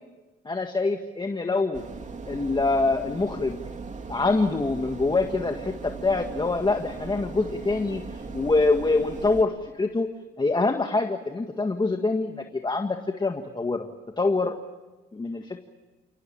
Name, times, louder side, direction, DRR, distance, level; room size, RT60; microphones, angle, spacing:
voice 1, 0.5-1.8 2.3-3.6 4.1-10.1 10.4-13.9 14.2-14.5 15.1-15.6, left 3 dB, 20° left, 5 dB, 1.7 m, -25 dB
sound 1, 1.7-9.4, right 4 dB, 40° right, 3.2 m, -38 dB
30.0 x 18.0 x 8.8 m, 1.2 s
cardioid pair, 90°, 20 cm